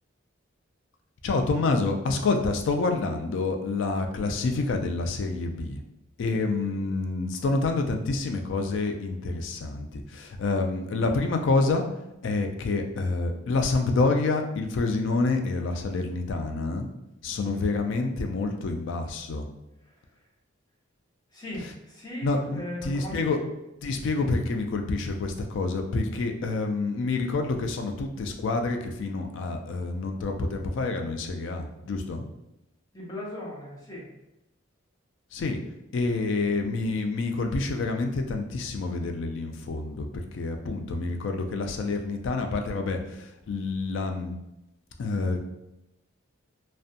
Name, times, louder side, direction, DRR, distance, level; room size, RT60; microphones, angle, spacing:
voice 1, 1.2-5.8 6.2-11.8 12.2-16.9 17.2-19.5 22.2-23.4 23.8-32.3 35.3-35.6 35.9-44.3 45.0-45.4, left 3 dB, 60° left, 4 dB, 0.3 m, -28 dB
voice 2, 17.4-17.7 19.8-20.0 21.3-23.5 32.9-34.1, left 1 dB, 20° left, -5 dB, 0.6 m, -38 dB
2.5 x 2.1 x 2.6 m, 0.90 s
head